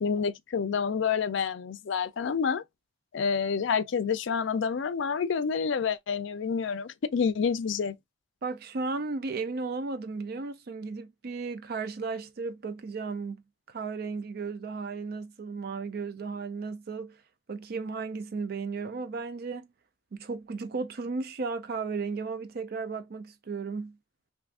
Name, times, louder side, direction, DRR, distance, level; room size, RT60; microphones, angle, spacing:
voice 1, 0.0-2.6 3.1-8.0, left 6 dB, 70° left, 0.4 m, -28 dB
voice 2, 8.4-13.4 13.7-17.2 17.5-19.7 20.1-24.0, right 4 dB, 50° right, 0.4 m, -35 dB
2.7 x 2.4 x 3.5 m
head